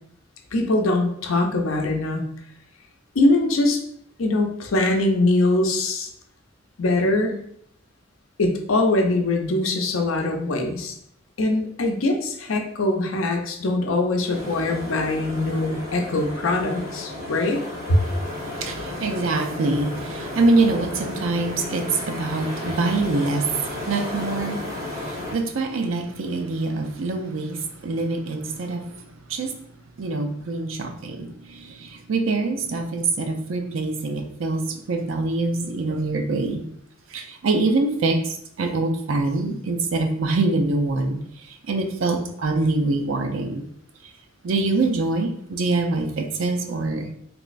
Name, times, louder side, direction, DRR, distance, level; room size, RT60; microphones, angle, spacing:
voice 1, 0.5-2.3 3.1-3.8 4.2-6.1 6.8-7.4 8.4-10.9 11.4-17.6 17.9-18.0, left 2 dB, 80° left, 3 dB, 0.6 m, -22 dB
sound 1, 14.2-25.3, left 1 dB, 85° right, 1.4 m, -33 dB
voice 2, 18.5-29.6 30.0-36.7 37.1-43.7 44.4-47.1, right 3 dB, 70° right, 6 dB, 0.5 m, -25 dB
3.3 x 3.0 x 2.5 m, 0.68 s
head